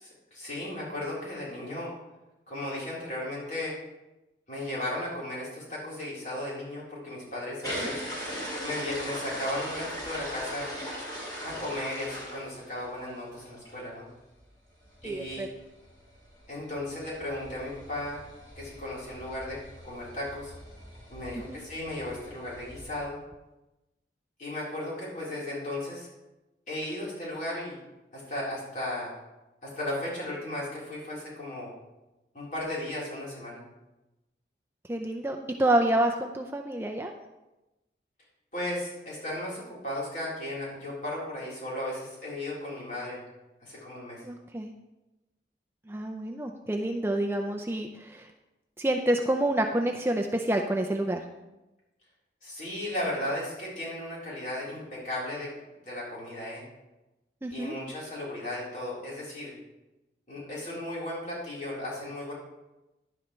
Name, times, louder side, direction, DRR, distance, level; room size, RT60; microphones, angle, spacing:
voice 1, 0.0-1.9 2.5-3.7 4.5-8.0 8.6-10.7 11.4-14.1 15.0-15.4 16.5-18.2 18.6-20.5 21.1-23.2 24.4-26.1 26.7-27.8 28.1-29.1 29.6-31.7 32.3-33.6 38.5-43.2 43.6-44.2 52.4-55.5 55.8-56.6 57.5-59.5 60.3-62.3, left 1 dB, 45° left, -7 dB, 4.0 m, -35 dB
sound 1, 7.6-13.1 13.5-13.7 14.1-14.2 14.4-14.5 14.7-23.0, equal, 25° left, 2.6 m, -40 dB
voice 2, 15.0-15.5 21.5-21.6 34.9-37.1 44.2-44.7 45.9-48.3 48.8-51.2 57.4-57.7, right 1 dB, 15° right, 3 dB, 0.5 m, -28 dB
11.0 x 10.5 x 3.2 m, 1.0 s
head